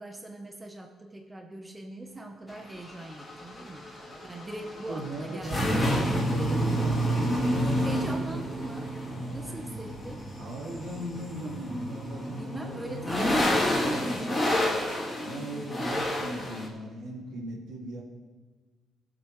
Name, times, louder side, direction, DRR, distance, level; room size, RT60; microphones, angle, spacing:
voice 1, 0.0-3.9 4.2-5.7 7.6-8.9 9.3-10.3 12.3-14.6, right 1 dB, 15° right, 3 dB, 0.9 m, -42 dB
sound 1, 2.5-16.7, equal, 10° left, 3.0 m, -29 dB
voice 2, 4.0-8.3 10.4-13.6 13.8-14.1 15.2-18.0, right 1 dB, 70° right, -1 dB, 2.3 m, -38 dB
18.5 x 7.8 x 3.2 m, 1.3 s
cardioid pair, 125°, 0 cm